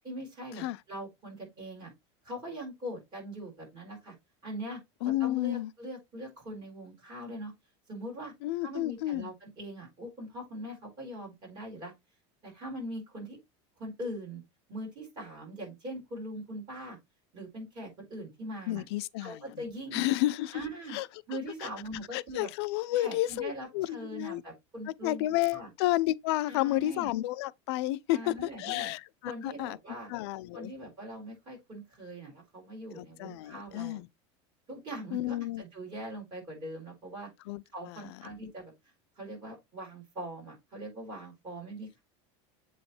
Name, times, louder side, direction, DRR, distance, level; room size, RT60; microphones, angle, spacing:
voice 1, 0.0-1.9 2.2-4.1 4.4-7.5 7.9-8.3 8.6-11.9 12.4-13.4 13.8-14.4 14.7-17.0 17.3-18.8 19.2-20.0 20.5-21.0 21.3-22.5 22.9-25.7 26.5-27.1 28.1-28.9 29.3-30.1 30.5-34.0 34.7-37.3 37.7-38.7 39.2-42.0, equal, 30° right, 4.4 m, -41 dB
voice 2, 5.0-5.7 8.4-9.3 18.7-19.4 19.9-20.6 20.9-21.1 21.6-21.7 22.1-24.4 25.0-29.8 30.1-30.7 33.0-34.1 35.1-35.6 37.5-38.2, left 16 dB, 70° left, 0.5 m, -31 dB
7.8 x 3.2 x 4.2 m
cardioid pair, 175°, 14 cm